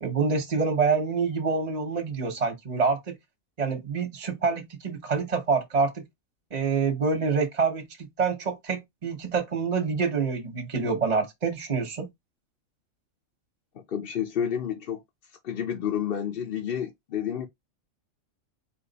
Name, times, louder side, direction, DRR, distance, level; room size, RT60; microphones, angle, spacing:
voice 1, 0.0-3.1 3.6-6.0 6.5-7.9 8.2-12.1, right 5 dB, 30° right, 1.0 m, -26 dB
voice 2, 13.7-15.0 15.3-17.5, left 9 dB, 55° left, 0.7 m, -30 dB
4.4 x 2.5 x 3.9 m
omnidirectional pair, 1.4 m